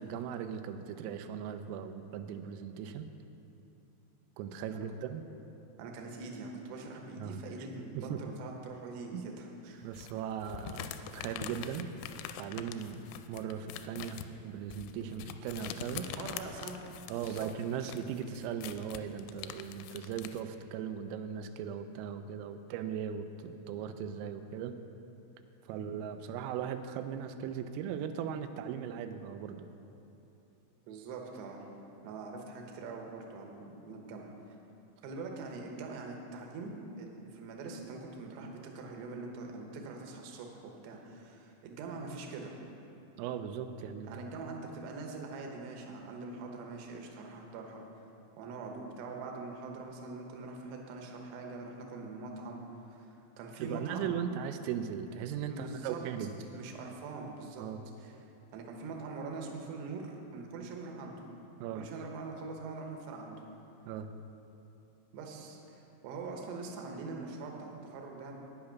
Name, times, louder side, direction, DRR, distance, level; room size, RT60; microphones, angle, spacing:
voice 1, 0.0-3.1 4.4-5.2 7.2-7.4 7.9-8.2 9.1-9.2 9.8-11.9 12.4-16.1 17.1-24.8 25.7-29.7 43.2-44.1 44.4-44.5 53.6-56.3 57.6-57.8 61.6-61.9 63.9-64.1, right 8 dB, 90° right, 8 dB, 3.3 m, -38 dB
voice 2, 5.8-9.9 16.0-17.5 25.7-25.8 30.9-31.7 32.0-34.3 35.0-38.5 38.8-42.6 44.0-47.8 48.4-52.8 53.4-54.2 55.5-56.0 56.5-57.7 58.0-58.2 58.5-61.2 61.7-63.4 65.1-68.3, right 3 dB, 75° right, 1 dB, 2.6 m, -43 dB
sound 1, 9.9-20.4, left 9 dB, 85° left, 3.2 m, -44 dB
9.6 x 8.6 x 5.8 m, 2.9 s
omnidirectional pair, 5.9 m